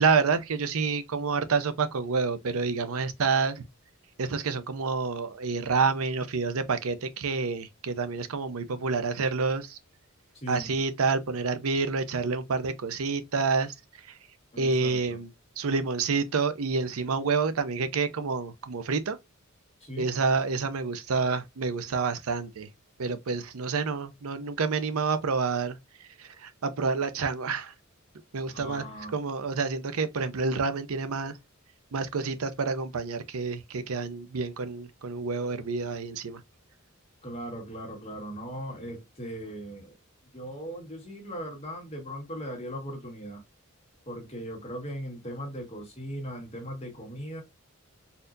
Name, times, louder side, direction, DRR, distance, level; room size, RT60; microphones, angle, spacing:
voice 1, 0.0-3.6 4.2-9.8 10.5-13.7 14.1-14.2 14.6-15.3 15.6-19.2 20.0-22.7 23.0-25.8 26.2-27.7 28.3-28.8 29.1-31.4 31.9-36.4, right 4 dB, 85° right, 0.6 m, -28 dB
voice 2, 10.3-10.8 14.5-15.2 19.8-20.1 28.5-29.2 37.2-40.0 40.3-43.4 44.1-47.4, equal, 30° left, 1.7 m, -38 dB
4.2 x 2.7 x 2.6 m
head